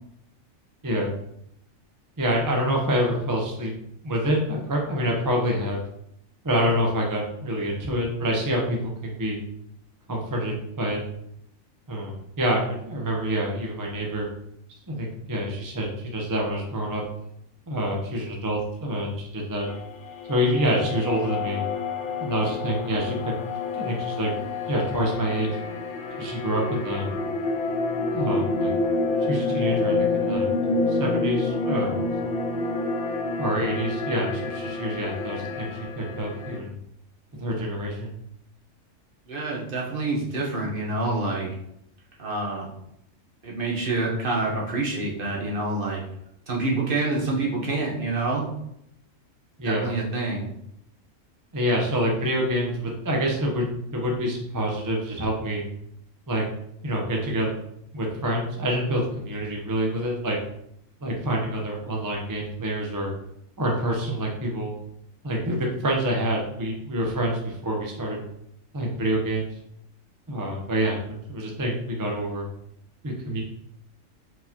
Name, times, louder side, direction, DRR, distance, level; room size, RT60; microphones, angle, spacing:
voice 1, 2.2-3.7 4.0-5.8 6.4-9.4 10.1-11.0 11.9-14.3 14.9-17.0 17.7-19.7 20.3-21.6 22.2-23.3 23.7-24.3 24.7-25.6 26.2-27.1 28.1-28.7 29.1-31.9 33.4-36.7 37.4-38.2 49.6-49.9 51.5-53.7 53.9-55.6 56.3-56.5 56.8-57.5 57.9-60.4 61.0-63.1 63.6-64.7 65.2-68.2 68.7-69.6 70.3-72.5 73.0-73.4, equal, 25° right, -1 dB, 0.5 m, -27 dB
ab celler atmos, 19.7-36.6, left 3 dB, 55° left, 0.7 m, -28 dB
voice 2, 39.3-41.5 42.2-42.7 43.4-46.0 46.5-48.5 49.6-50.5, right 2 dB, 45° right, -2 dB, 1.1 m, -27 dB
4.6 x 4.0 x 2.7 m, 0.76 s
omnidirectional pair, 1.4 m